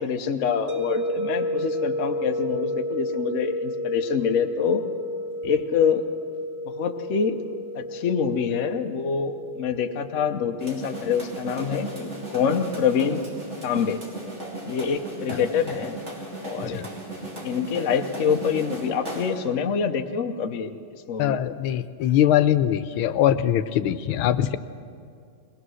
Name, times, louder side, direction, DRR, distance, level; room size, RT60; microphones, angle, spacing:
voice 1, 0.0-4.8 5.4-6.0 6.8-7.4 7.7-13.2 13.6-14.0 14.6-15.9 16.4-16.8 17.4-21.5, left 6 dB, 50° left, 5 dB, 1.0 m, -26 dB
sound 1, 0.7-15.6, equal, 55° right, 2.1 m, -33 dB
sound 2, 10.6-19.5, right 2 dB, 35° right, 3.1 m, -36 dB
voice 2, 21.2-24.6, left 11 dB, 85° left, 13 dB, 1.5 m, -22 dB
21.5 x 19.5 x 6.3 m, 2.3 s
omnidirectional pair, 2.2 m